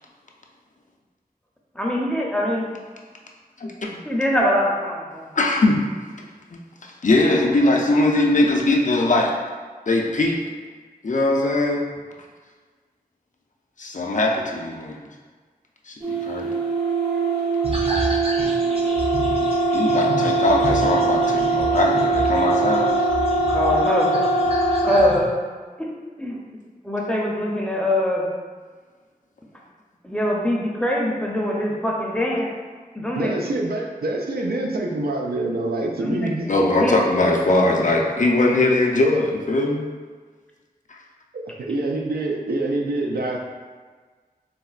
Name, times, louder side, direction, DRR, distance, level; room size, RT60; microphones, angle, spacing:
voice 1, 1.7-2.7 4.1-5.3 23.5-24.1 24.8-25.4 25.8-25.9 26.2-26.4 26.8-28.3 30.0-32.5 32.9-33.4 34.5-34.6 36.0-37.0, left 1 dB, 5° left, -3 dB, 0.6 m, -23 dB
voice 2, 3.6-4.0 5.4-5.8 6.5-6.6 7.0-9.3 9.9-10.4 11.0-11.8 13.8-15.0 15.9-16.5 19.7-23.1 36.5-39.9 40.9-41.0, left 2 dB, 55° left, -1 dB, 0.4 m, -20 dB
sound 1, 16.0-25.1, right 2 dB, 55° right, 1.5 m, -22 dB
sound 2, 17.6-25.2, right 1 dB, 40° right, 0.6 m, -30 dB
voice 3, 33.1-36.4 41.3-43.4, right 2 dB, 85° right, 0 dB, 0.4 m, -26 dB
4.0 x 2.1 x 2.3 m, 1.5 s
wide cardioid pair, 50°, 16 cm